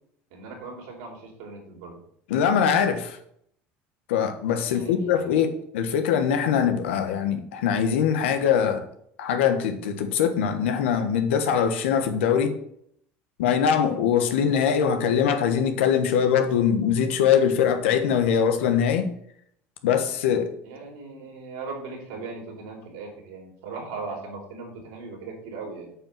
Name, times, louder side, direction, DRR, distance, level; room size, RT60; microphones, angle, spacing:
voice 1, 0.3-2.0 4.6-5.3 20.6-26.0, right 4 dB, 80° right, 4.3 m, -38 dB
voice 2, 2.3-3.2 4.1-8.9 9.2-12.6 13.4-19.1 19.8-20.6, left 7 dB, 90° left, 1.4 m, -22 dB
8.5 x 5.0 x 7.5 m
supercardioid pair, 90°, 6 cm